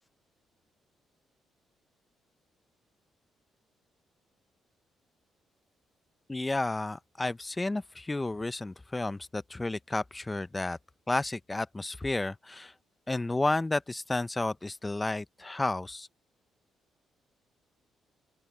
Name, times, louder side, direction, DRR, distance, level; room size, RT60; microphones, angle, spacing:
voice 1, 6.3-10.8 11.1-12.7 13.1-16.1, left 2 dB, 15° left, 0.8 m, -31 dB
open air
cardioid pair, 90°, 0 cm